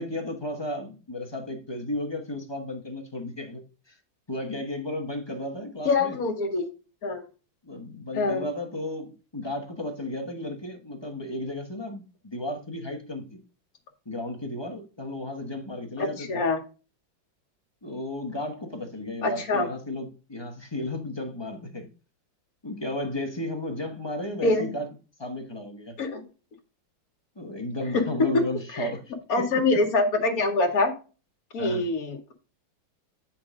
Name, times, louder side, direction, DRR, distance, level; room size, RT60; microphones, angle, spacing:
voice 1, 0.0-3.6 4.3-6.2 7.6-13.4 14.0-16.4 17.8-21.9 22.6-24.9 25.2-25.9 27.4-29.0 29.4-29.8 31.6-31.8, left 1 dB, 15° left, 0.9 m, -34 dB
voice 2, 5.9-6.7 7.0-7.2 8.1-8.4 16.0-16.6 19.2-19.7 24.4-24.7 26.0-26.2 27.9-28.4 28.7-29.0 29.3-30.9 31.5-32.3, left 3 dB, 50° left, 1.9 m, -24 dB
8.6 x 5.8 x 3.7 m
omnidirectional pair, 2.2 m